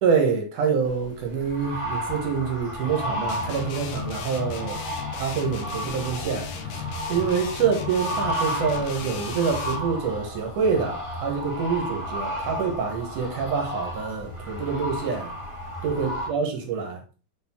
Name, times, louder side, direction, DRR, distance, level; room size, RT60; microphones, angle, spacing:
voice 1, 0.0-4.8 5.1-6.8 7.1-15.3 15.8-17.0, right 6 dB, 70° right, 2.7 m, -26 dB
sound 1, 0.8-16.3, equal, 10° left, 1.4 m, -33 dB
sound 2, 3.3-9.9, left 8 dB, 85° left, 2.5 m, -35 dB
6.5 x 4.1 x 4.3 m
omnidirectional pair, 3.7 m